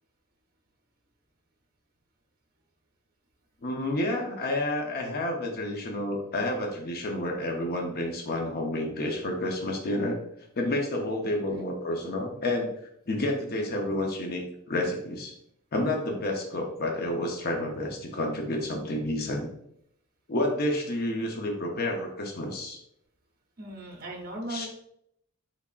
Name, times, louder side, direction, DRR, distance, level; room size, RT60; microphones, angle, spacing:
voice 1, 3.6-10.2 10.6-12.7 13.1-15.3 15.7-19.5 20.3-22.8 24.5-24.7, left 1 dB, 45° left, 1 dB, 0.6 m, -30 dB
voice 2, 23.6-24.7, right 1 dB, 45° right, -2 dB, 0.9 m, -37 dB
3.7 x 3.3 x 2.3 m, 0.73 s
head